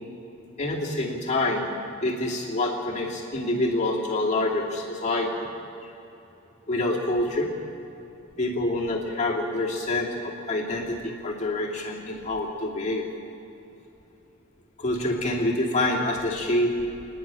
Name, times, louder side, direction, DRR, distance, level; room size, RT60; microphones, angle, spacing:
voice 1, 0.6-1.7 2.0-5.5 6.7-7.5 8.4-13.0 14.8-16.8, left 2 dB, 35° left, -2 dB, 2.6 m, -26 dB
27.5 x 10.5 x 9.0 m, 2.9 s
head